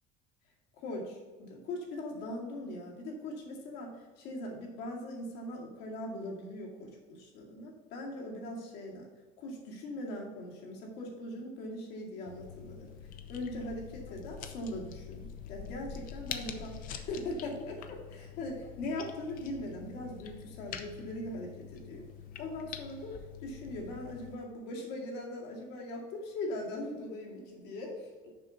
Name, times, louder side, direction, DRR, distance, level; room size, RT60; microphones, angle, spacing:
voice 1, 0.8-9.1 9.4-12.9 13.3-22.0 22.4-23.1 23.4-28.1, left 1 dB, 70° left, -1 dB, 2.3 m, -40 dB
sound 1, 12.3-24.3, left 8 dB, 50° left, 0.7 m, -45 dB
6.9 x 5.4 x 5.7 m, 1.4 s
cardioid pair, 160°, 18 cm